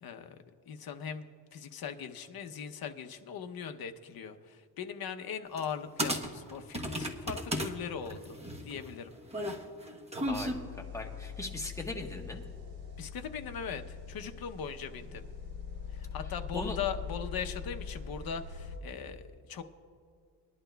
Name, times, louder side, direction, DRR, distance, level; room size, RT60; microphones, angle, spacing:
voice 1, 0.0-1.3 1.5-8.4 8.6-9.1 13.0-15.3 15.9-19.6, left 7 dB, 55° left, 7 dB, 0.7 m, -40 dB
sound 1, 5.6-5.7 6.0-7.7 8.1-10.5, equal, 15° right, 0.9 m, -34 dB
voice 2, 10.3-12.4 16.5-16.8, left 2 dB, 5° left, 1 dB, 1.1 m, -39 dB
sound 2, 10.3-18.8, left 6 dB, 80° right, 3.3 m, -43 dB
21.0 x 11.0 x 2.2 m, 2.4 s
cardioid pair, 130°, 44 cm